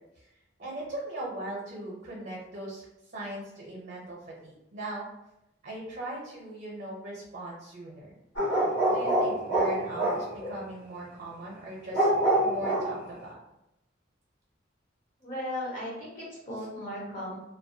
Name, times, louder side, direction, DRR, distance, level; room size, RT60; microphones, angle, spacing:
voice 1, 0.6-2.8 3.1-5.1 5.6-8.2 8.9-12.1 12.4-13.4 16.6-16.7, right 1 dB, 50° right, -4 dB, 0.7 m, -39 dB
sound 1, 8.4-10.5 11.9-13.1, right 1 dB, 85° left, 0.9 m, -26 dB
voice 2, 15.2-17.3, left 1 dB, 50° left, -7 dB, 1.1 m, -36 dB
2.2 x 2.1 x 2.6 m, 0.87 s
head